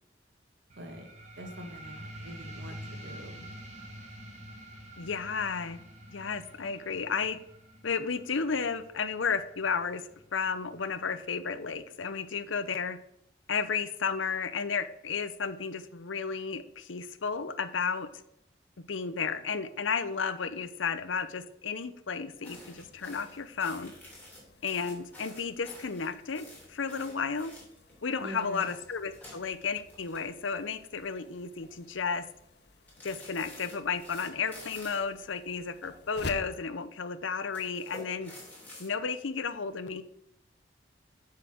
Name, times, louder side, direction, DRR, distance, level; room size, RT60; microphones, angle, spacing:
sound 1, 0.7-11.7, right 1 dB, 35° right, 2.0 m, -48 dB
voice 1, 0.8-1.1 1.4-3.5 28.2-28.7, equal, 75° right, 4 dB, 1.9 m, -44 dB
voice 2, 5.0-5.8 6.1-7.4 7.8-10.0 10.3-13.0 13.5-18.1 18.9-23.9 24.6-27.5 28.0-32.3 33.0-38.3 38.8-40.0, left 5 dB, 90° left, 12 dB, 0.7 m, -33 dB
sound 2, 22.4-28.0 28.4-30.7 31.0-31.2 31.6-32.1 32.9-35.1 35.8-36.6 37.4-38.9, left 1 dB, 10° left, 3.3 m, -50 dB
sound 3, 22.5-36.5, left 3 dB, 60° left, 0.8 m, -51 dB
7.8 x 5.8 x 6.2 m, 0.77 s
head